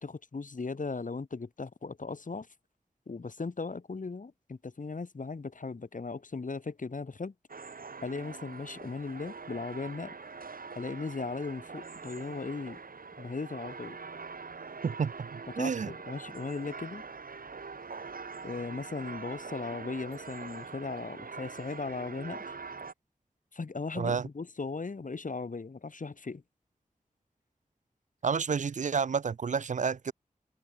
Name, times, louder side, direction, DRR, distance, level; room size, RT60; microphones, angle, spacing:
voice 1, 0.0-2.5 3.1-7.3 8.0-10.1 10.7-12.8 13.2-14.0 15.6-17.0 18.4-22.5 23.5-26.4, left 4 dB, 65° left, 2.2 m, -37 dB
sound 1, 7.5-22.9, right 4 dB, 90° right, 3.8 m, -44 dB
voice 2, 14.8-15.9 23.9-24.3 28.2-30.1, right 6 dB, 60° right, 0.4 m, -30 dB
wide cardioid pair, 55°, 14 cm